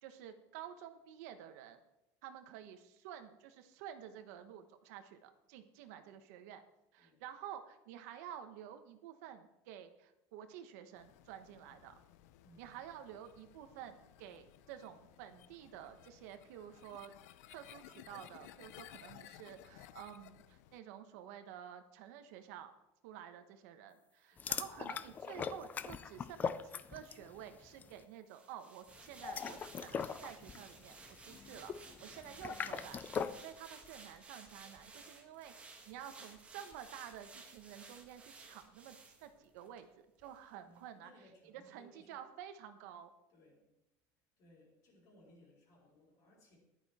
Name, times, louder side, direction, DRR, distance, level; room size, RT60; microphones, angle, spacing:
voice 1, 0.0-1.8 2.2-6.6 6.9-11.9 12.6-17.1 17.5-22.7 23.0-39.9 40.2-41.1 41.4-43.1, right 10 dB, 80° right, 8 dB, 1.2 m, -51 dB
sound 1, 11.0-20.8, left 13 dB, 90° left, 0.7 m, -58 dB
voice 2, 12.4-12.8 24.3-24.5 40.5-42.2 43.3-43.7 44.4-46.6, left 1 dB, 45° left, -3 dB, 4.3 m, -64 dB
sound 2, 24.4-27.3 27.6-27.9 29.1-33.4, left 7 dB, 20° left, 0.4 m, -41 dB
sound 3, 28.3-39.9 40.2-40.4, right 3 dB, 15° right, 1.5 m, -56 dB
14.0 x 11.5 x 4.3 m, 0.91 s
cardioid pair, 170°, 8 cm